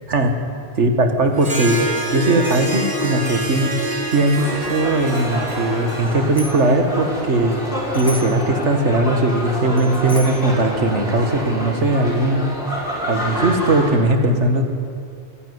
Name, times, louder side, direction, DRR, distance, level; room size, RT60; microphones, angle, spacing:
voice 1, 0.8-1.8 2.1-3.7 4.1-7.6 7.9-12.5 13.1-14.7, right 2 dB, 85° right, 5 dB, 2.1 m, -18 dB
Harp, 1.3-7.1, right 1 dB, 45° right, 3.1 m, -26 dB
sound 1, 4.4-13.9, equal, 50° left, 5.1 m, -27 dB
Bicycle bell, 6.0-6.7 7.9-8.5 9.7-10.5, left 2 dB, 20° left, 2.6 m, -34 dB
27.0 x 11.0 x 9.7 m, 2.5 s
omnidirectional pair, 1.2 m